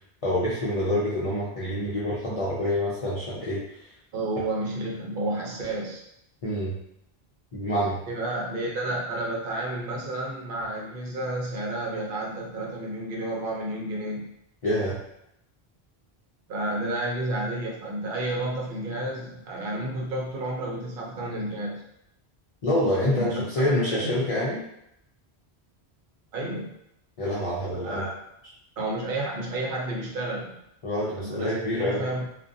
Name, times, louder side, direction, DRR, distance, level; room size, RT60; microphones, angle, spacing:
voice 1, 0.2-3.9 6.4-6.8 7.5-8.0 14.6-15.0 22.6-24.6 27.2-28.1 30.8-32.0, left 1 dB, 45° left, -8 dB, 0.5 m, -26 dB
voice 2, 4.1-6.0 8.1-14.3 16.5-21.8 23.1-24.3 26.3-26.7 27.8-28.1 28.8-30.5 31.2-32.3, right 1 dB, 60° right, -2 dB, 0.8 m, -31 dB
2.4 x 2.2 x 2.6 m, 0.79 s
omnidirectional pair, 1.1 m